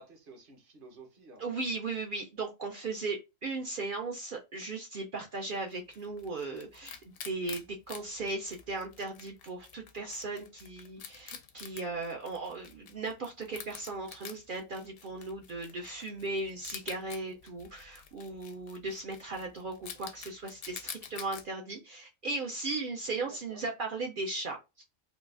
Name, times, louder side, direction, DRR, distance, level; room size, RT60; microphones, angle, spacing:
voice 1, 0.0-1.6 23.1-23.6, right 2 dB, 45° right, 1.0 m, -53 dB
voice 2, 1.4-7.0 7.2-24.8, right 3 dB, 65° right, 0.5 m, -37 dB
Wild animals, 5.5-21.4, left 7 dB, 65° left, 0.6 m, -49 dB
3.8 x 2.4 x 2.4 m
omnidirectional pair, 1.4 m